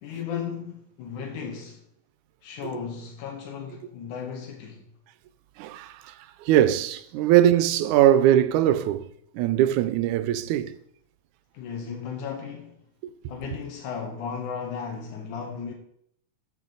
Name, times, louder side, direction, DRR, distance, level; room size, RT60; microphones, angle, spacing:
voice 1, 0.0-1.8 2.4-4.9 11.5-12.8 13.3-15.7, left 7 dB, 85° left, 2.6 m, -35 dB
voice 2, 5.6-6.1 6.4-9.1 9.3-10.8, right 12 dB, 90° right, 2.1 m, -21 dB
13.0 x 6.4 x 3.9 m
omnidirectional pair, 3.4 m